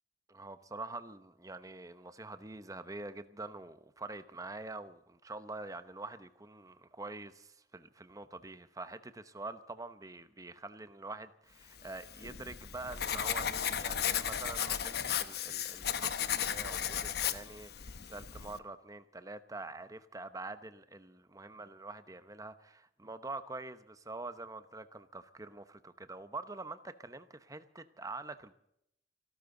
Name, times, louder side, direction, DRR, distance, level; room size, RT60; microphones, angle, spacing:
voice 1, 0.3-28.5, right 3 dB, 20° right, 0.9 m, -45 dB
Writing, 11.9-18.6, left 9 dB, 65° left, 0.9 m, -35 dB
29.0 x 12.5 x 3.9 m
head